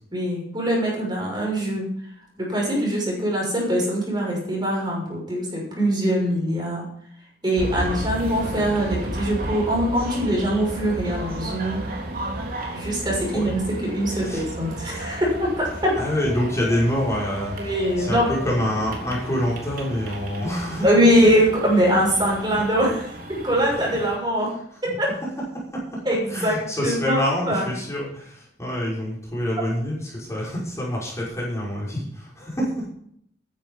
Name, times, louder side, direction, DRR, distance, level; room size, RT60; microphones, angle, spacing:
voice 1, 0.1-1.8 2.4-6.8 7.4-11.8 12.7-13.6 13.9-15.9 17.6-18.3 20.8-24.5 25.0-25.1 26.0-26.6 26.8-27.7, equal, 25° right, -2 dB, 6.4 m, -22 dB
sound 1, 7.6-24.2, right 1 dB, 55° right, 3.5 m, -33 dB
voice 2, 14.1-14.8 16.0-21.1 24.9-25.0 25.2-26.0 26.3-32.9, equal, 15° left, -5 dB, 5.6 m, -27 dB
14.0 x 10.5 x 5.6 m, 0.67 s
head